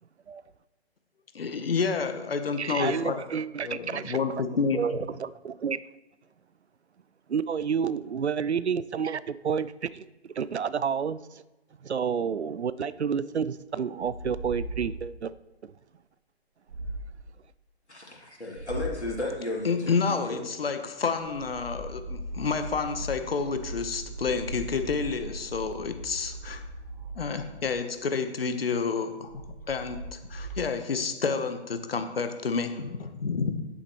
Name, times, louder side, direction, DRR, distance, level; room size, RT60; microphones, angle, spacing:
voice 1, 1.3-3.2 3.6-4.8 19.6-26.6 27.2-29.3 29.7-33.6, left 5 dB, 60° left, 8 dB, 1.0 m, -29 dB
voice 2, 2.6-4.2 4.7-5.8 7.3-11.4 11.8-15.3 15.6-15.7, right 7 dB, 80° right, 17 dB, 0.5 m, -30 dB
sound 1, 14.0-15.3 16.7-17.3 18.5-19.3 21.1-27.9 29.3-30.6, right 1 dB, 55° right, 1.4 m, -39 dB
voice 3, 17.9-20.4, left 2 dB, 85° left, -3 dB, 2.5 m, -34 dB
10.0 x 8.4 x 3.0 m, 1.1 s
figure-of-eight pair, 130°, 33 cm